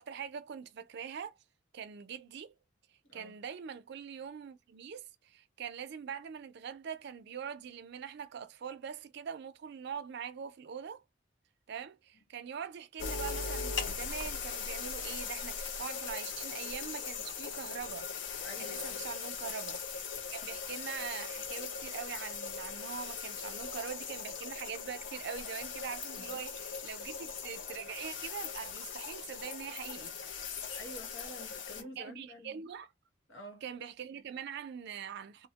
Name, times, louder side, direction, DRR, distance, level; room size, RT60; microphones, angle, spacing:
voice 1, 0.0-1.4 1.7-2.6 3.1-11.0 11.7-18.1 18.6-30.2 31.7-32.9 33.6-35.5, right 7 dB, 60° right, 0.4 m, -43 dB
sound 1, 13.0-31.8, left 5 dB, 70° left, 0.5 m, -40 dB
voice 2, 18.4-19.0 26.2-26.5 30.7-32.6 33.3-33.6, left 1 dB, 90° left, 1.1 m, -49 dB
2.6 x 2.1 x 2.8 m
head